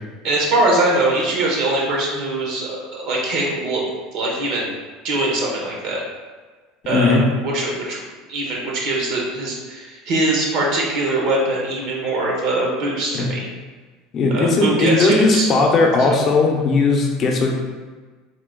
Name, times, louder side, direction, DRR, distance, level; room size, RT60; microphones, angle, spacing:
voice 1, 0.2-3.9 4.1-4.7 5.0-6.0 6.9-8.0 8.3-13.5 14.3-15.5 16.0-16.2, right 2 dB, 60° right, -2 dB, 1.0 m, -22 dB
voice 2, 6.9-7.2 13.1-13.3 14.1-17.5, left 3 dB, 35° left, 1 dB, 0.7 m, -17 dB
3.6 x 2.4 x 3.7 m, 1.4 s
supercardioid pair, 135°, 0 cm